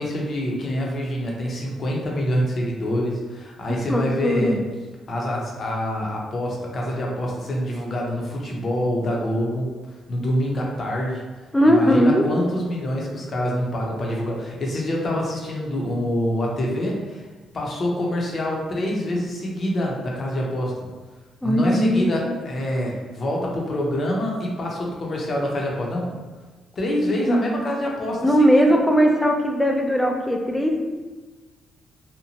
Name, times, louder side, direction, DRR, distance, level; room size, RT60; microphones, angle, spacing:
voice 1, 0.0-4.6 5.1-9.7 10.1-11.2 11.6-17.3 17.5-20.8 21.4-26.2 26.8-28.8, left 1 dB, 45° left, -2 dB, 0.6 m, -26 dB
voice 2, 3.9-4.6 11.5-12.2 21.4-22.4 27.3-27.5 28.2-30.8, equal, 10° left, 2 dB, 0.4 m, -19 dB
2.8 x 2.1 x 2.8 m, 1.3 s
cardioid pair, 90°, 0 cm